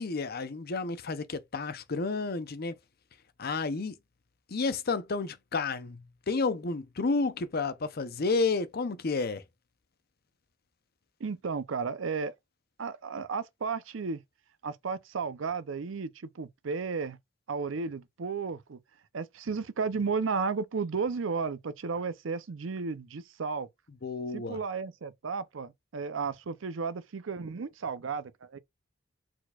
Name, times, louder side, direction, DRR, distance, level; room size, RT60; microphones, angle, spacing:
voice 1, 0.0-2.8 3.4-4.0 4.5-9.4 24.0-24.6, left 3 dB, 50° left, 0.6 m, -31 dB
voice 2, 11.2-12.3 12.8-14.2 14.6-17.2 17.5-18.8 19.1-23.7 24.3-28.6, right 5 dB, 85° right, 0.6 m, -33 dB
4.5 x 4.2 x 2.3 m
head